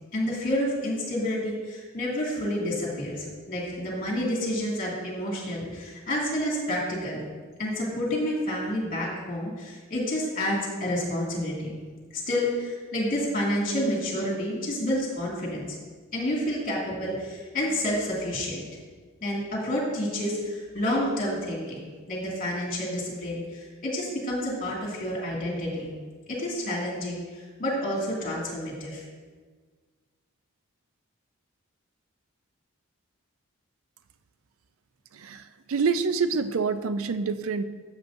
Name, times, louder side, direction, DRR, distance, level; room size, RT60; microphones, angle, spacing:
voice 1, 0.1-7.3 7.6-11.8 12.1-15.7 16.1-18.6 19.2-25.9 26.3-27.2 27.6-29.0, left 1 dB, 40° left, -3 dB, 2.4 m, -29 dB
voice 2, 35.1-37.6, right 5 dB, 70° right, 10 dB, 0.4 m, -27 dB
13.0 x 7.2 x 2.6 m, 1.5 s
head